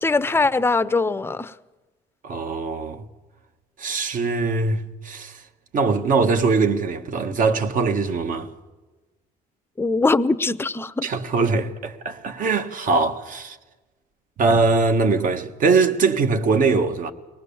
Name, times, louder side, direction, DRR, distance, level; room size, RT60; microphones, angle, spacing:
voice 1, 0.0-1.5 9.8-11.1, left 3 dB, 15° left, 0.6 m, -21 dB
voice 2, 2.2-3.1 3.8-5.4 5.7-8.5 11.0-13.6 14.4-17.1, right 4 dB, 50° right, 1.5 m, -21 dB
23.0 x 19.0 x 7.1 m
cardioid pair, 110°, 17 cm